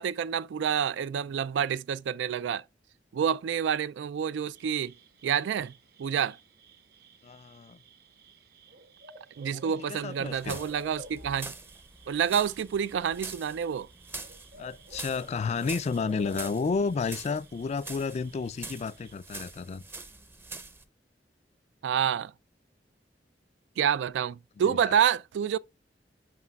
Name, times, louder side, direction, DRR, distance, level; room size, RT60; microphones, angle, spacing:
voice 1, 0.0-2.6 3.1-4.9 5.2-5.7 6.0-6.4 9.4-11.5 12.1-13.9 21.8-22.3 23.8-25.6, right 8 dB, 90° right, 0.3 m, -28 dB
sound 1, 4.6-19.1, equal, 60° right, 1.0 m, -52 dB
voice 2, 7.2-7.8 9.5-10.6 14.5-19.8 24.6-24.9, left 5 dB, 40° left, 0.3 m, -32 dB
sound 2, 10.2-20.8, right 3 dB, 15° right, 0.5 m, -45 dB
9.5 x 5.2 x 2.3 m
head